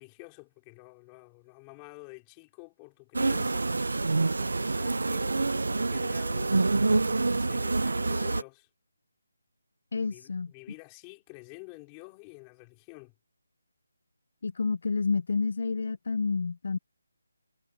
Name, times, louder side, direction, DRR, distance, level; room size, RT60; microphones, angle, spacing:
voice 1, 0.0-4.0 4.3-8.7 10.0-13.1, left 31 dB, 15° left, 4.1 m, -49 dB
sound 1, 3.1-8.4, right 3 dB, 80° right, 0.7 m, -27 dB
voice 2, 9.9-10.5 14.4-16.8, left 4 dB, 50° left, 0.6 m, -29 dB
hypercardioid pair, 175°, 0 cm